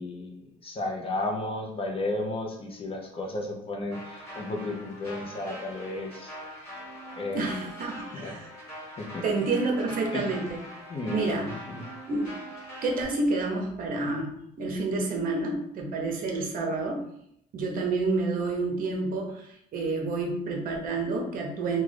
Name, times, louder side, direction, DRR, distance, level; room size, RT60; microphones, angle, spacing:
voice 1, 0.0-6.3 7.2-7.7 8.1-8.4 9.0-9.2 10.1-10.3 10.9-11.8, left 2 dB, 35° left, 1 dB, 0.6 m, -33 dB
sound 1, 3.9-13.1, equal, 15° left, 1.4 m, -43 dB
voice 2, 7.3-8.5 9.2-10.6 11.1-11.6 12.1-12.3 12.8-17.0 17.5-21.8, right 3 dB, 55° right, 1 dB, 0.7 m, -29 dB
2.4 x 2.2 x 3.3 m, 0.73 s
cardioid pair, 110°, 17 cm